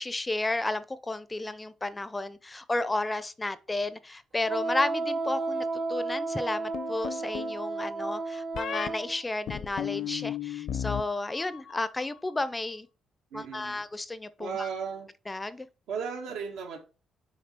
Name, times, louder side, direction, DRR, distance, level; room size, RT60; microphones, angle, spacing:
voice 1, 0.0-12.9 13.3-14.7 15.3-15.7, left 2 dB, 20° left, 0.5 m, -32 dB
Wind instrument woodwind instrument, 4.4-9.2, right 3 dB, 45° right, 0.6 m, -32 dB
sound 1, 6.7-7.6 8.6-8.9 9.5-11.0 11.3-11.9, left 10 dB, 70° left, 0.7 m, -34 dB
voice 2, 13.3-13.8 14.4-15.1 15.9-16.8, right 6 dB, 90° right, 1.6 m, -35 dB
6.7 x 3.7 x 4.4 m
cardioid pair, 90°, 0 cm